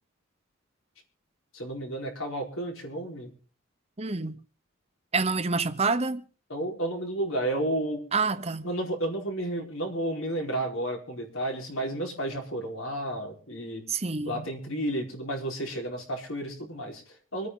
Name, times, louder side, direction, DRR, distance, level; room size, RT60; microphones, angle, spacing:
voice 1, 1.5-3.3 6.5-8.1 8.6-13.9 14.2-17.5, right 1 dB, 85° left, 4.6 m, -32 dB
voice 2, 4.0-4.4 5.1-6.2 8.1-8.7 13.9-14.4, right 4 dB, 30° right, 0.8 m, -27 dB
26.0 x 9.4 x 3.8 m
head